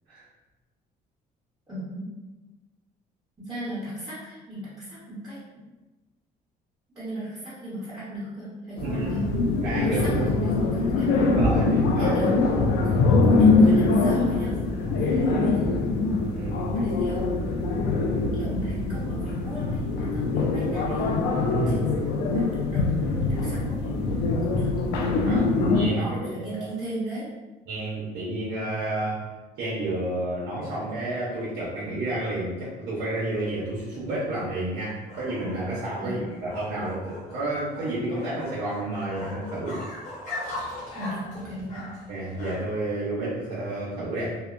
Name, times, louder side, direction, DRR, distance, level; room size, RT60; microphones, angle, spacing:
voice 1, 1.7-2.1 3.4-5.4 6.9-9.2 9.8-11.1 12.0-12.4 12.8-14.6 14.8-15.7 16.7-17.2 18.3-21.1 21.7-24.0 24.5-24.7 25.8-27.3 36.0-36.2 40.9-41.8, right 1 dB, 20° right, -12 dB, 1.2 m, -37 dB
sound 1, 8.8-25.9, left 3 dB, 85° left, 0.4 m, -23 dB
voice 2, 9.6-10.2 11.3-12.2 16.3-16.7 21.4-21.9 25.2-26.6 27.7-29.3 29.6-39.8 42.1-44.4, right 1 dB, 80° right, -8 dB, 0.8 m, -30 dB
sound 2, 33.5-42.9, left 1 dB, 50° left, 1.1 m, -40 dB
2.8 x 2.1 x 2.4 m, 1.1 s
cardioid pair, 110°, 17 cm